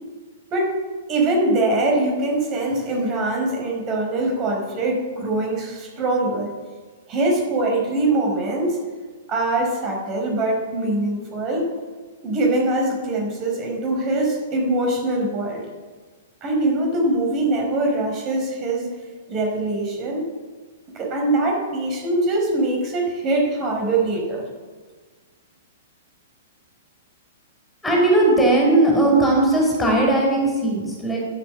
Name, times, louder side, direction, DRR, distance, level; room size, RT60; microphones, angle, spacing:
voice 1, 1.1-6.5 7.1-8.8 9.3-11.7 12.2-15.6 16.4-18.9 19.3-20.3 20.9-24.4, right 2 dB, 30° right, 0 dB, 4.7 m, -23 dB
voice 2, 27.8-31.2, right 2 dB, 10° left, -1 dB, 5.5 m, -18 dB
11.5 x 11.5 x 8.2 m, 1.4 s
hypercardioid pair, 135°, 0 cm